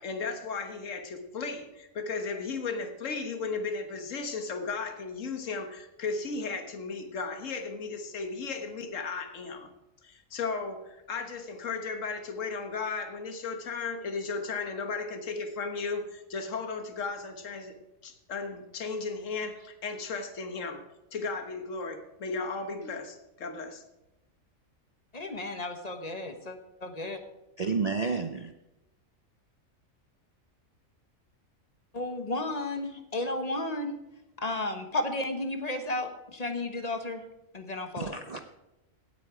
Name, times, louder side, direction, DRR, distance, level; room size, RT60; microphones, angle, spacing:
voice 1, 0.0-9.7 10.0-17.8 18.0-20.8 21.1-23.8, left 4 dB, 70° left, 7 dB, 1.6 m, -35 dB
voice 2, 25.1-26.6 26.8-27.2 31.9-34.0 34.4-37.2 37.5-38.2, left 2 dB, 30° left, 7 dB, 1.2 m, -33 dB
voice 3, 27.6-28.5 38.0-38.4, right 4 dB, 40° right, 7 dB, 0.5 m, -30 dB
17.0 x 8.6 x 4.8 m, 0.94 s
omnidirectional pair, 1.4 m